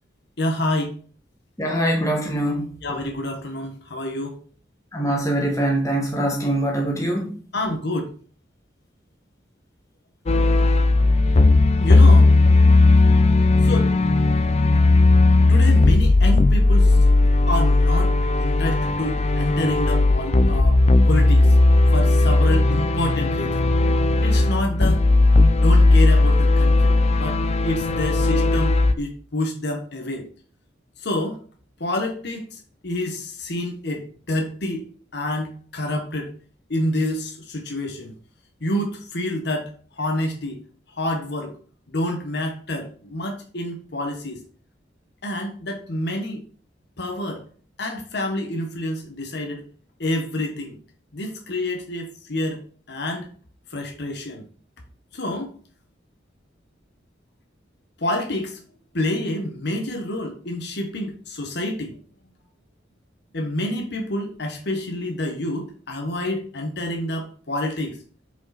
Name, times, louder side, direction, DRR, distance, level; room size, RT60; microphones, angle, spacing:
voice 1, 0.4-1.0 2.8-4.4 7.5-8.1 11.8-12.3 13.6-13.9 15.5-17.0 17.5-21.5 21.9-23.7 24.2-25.1 25.6-27.4 27.6-30.3 31.0-31.4 31.8-34.8 35.1-36.3 36.7-38.1 38.6-40.6 41.0-41.5 41.9-44.4 45.2-46.4 47.0-47.4 47.8-49.6 50.0-50.7 51.1-52.6 52.9-53.3 53.7-54.4 55.1-55.5 58.0-58.6 58.9-61.9 63.3-68.0, left 1 dB, 60° left, 1.2 m, -28 dB
voice 2, 1.6-2.7 4.9-7.4, right 1 dB, 15° left, 1.5 m, -23 dB
sound 1, 10.3-28.9, left 2 dB, 35° left, 0.5 m, -16 dB
5.8 x 5.0 x 4.1 m
head